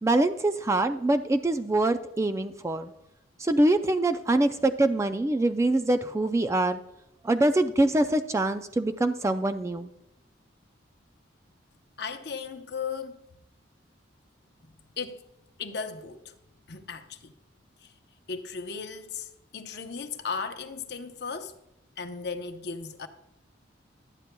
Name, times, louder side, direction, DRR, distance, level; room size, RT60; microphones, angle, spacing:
voice 1, 0.0-2.9 3.4-6.8 7.2-9.9, right 2 dB, 15° right, 0.3 m, -24 dB
voice 2, 12.0-13.2 15.0-15.2 15.6-16.3 16.7-17.3 17.8-17.9 18.3-21.5 22.0-23.1, left 5 dB, 60° left, 0.7 m, -36 dB
11.5 x 9.2 x 2.2 m
head